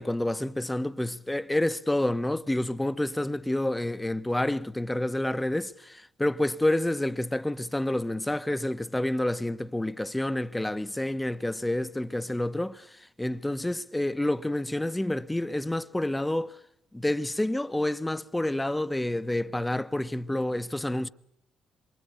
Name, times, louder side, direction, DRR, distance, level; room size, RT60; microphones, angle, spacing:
voice 1, 0.0-16.6 16.9-21.1, left 1 dB, 10° left, 1.1 m, -29 dB
27.0 x 24.0 x 9.2 m
cardioid pair, 90°, 0 cm